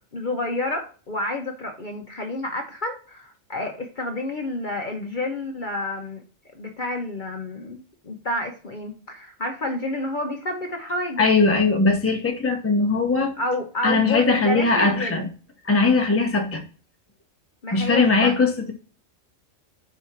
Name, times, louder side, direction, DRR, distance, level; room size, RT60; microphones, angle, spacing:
voice 1, 0.1-6.2 6.5-7.8 8.0-11.3 13.4-15.3 17.6-18.3, left 2 dB, 40° left, 1.0 m, -29 dB
voice 2, 11.2-13.3 13.8-15.3 15.7-16.6 17.7-18.7, left 3 dB, 10° left, 1.0 m, -20 dB
4.8 x 4.3 x 5.8 m
omnidirectional pair, 1.3 m